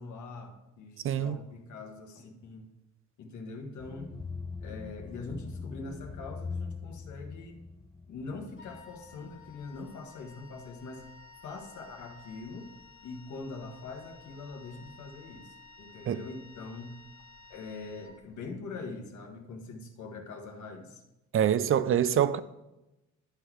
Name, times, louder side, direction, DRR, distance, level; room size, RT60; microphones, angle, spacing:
voice 1, 0.0-2.7 3.2-4.1 4.6-7.6 8.1-11.1 11.4-12.7 13.0-17.0 17.5-21.0, left 3 dB, 75° left, 1.4 m, -43 dB
voice 2, 1.0-1.4 16.1-16.2 21.3-22.4, right 9 dB, 45° right, 0.5 m, -25 dB
sound 1, 3.8-9.8, left 4 dB, 15° left, 0.7 m, -42 dB
Wind instrument woodwind instrument, 8.6-18.7, left 4 dB, 45° left, 1.2 m, -54 dB
11.5 x 4.0 x 4.6 m
cardioid pair, 90°, 30 cm